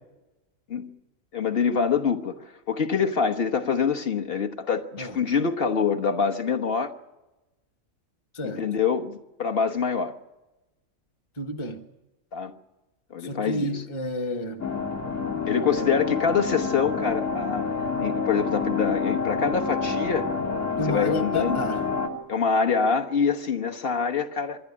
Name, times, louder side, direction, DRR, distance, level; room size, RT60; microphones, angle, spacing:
voice 1, 1.3-2.4 2.7-6.9 8.4-10.2 12.3-12.5 13.1-13.8 15.5-17.7 18.0-20.3 20.9-21.6 22.3-24.6, left 6 dB, 45° left, 1.4 m, -25 dB
voice 2, 11.4-11.9 13.2-14.7 20.8-21.9, left 1 dB, 20° left, 1.2 m, -30 dB
sound 1, 14.6-22.1, left 5 dB, 60° left, 2.9 m, -28 dB
26.0 x 12.0 x 9.8 m
omnidirectional pair, 1.5 m